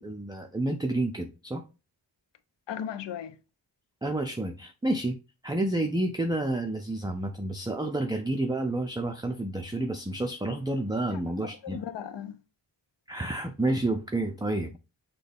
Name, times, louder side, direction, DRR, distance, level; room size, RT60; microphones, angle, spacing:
voice 1, 0.0-1.6 4.0-5.2 5.4-11.8 13.1-14.8, right 2 dB, 10° right, 0.4 m, -30 dB
voice 2, 2.7-3.4 11.1-12.4, left 9 dB, 65° left, 0.6 m, -37 dB
6.3 x 2.3 x 3.4 m
cardioid pair, 75°, 48 cm